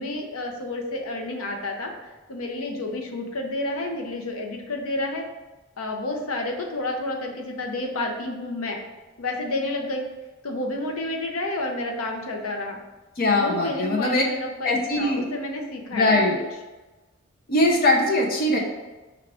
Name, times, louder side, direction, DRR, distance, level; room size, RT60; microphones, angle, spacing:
voice 1, 0.0-5.2 5.8-8.8 9.2-10.0 10.4-12.8 13.3-16.1, left 2 dB, 80° left, 2 dB, 0.6 m, -30 dB
voice 2, 13.2-14.2 14.6-15.2 15.9-16.4 17.5-18.6, left 1 dB, 45° left, 0 dB, 0.7 m, -21 dB
4.8 x 2.4 x 3.3 m, 1.2 s
head